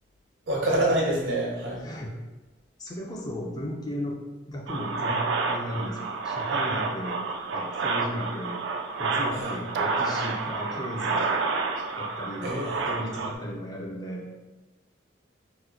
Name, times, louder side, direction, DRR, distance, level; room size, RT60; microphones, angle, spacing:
voice 1, 0.5-1.8 9.3-9.6 12.4-12.8, right 1 dB, 85° right, -3 dB, 0.9 m, -26 dB
voice 2, 1.8-2.1 2.8-4.2 4.5-7.2 7.5-8.6 9.0-11.4 12.0-14.4, equal, 20° left, -1 dB, 0.4 m, -35 dB
sound 1, 4.7-13.3, right 4 dB, 70° right, 0.3 m, -29 dB
3.0 x 2.0 x 3.5 m, 1.1 s
head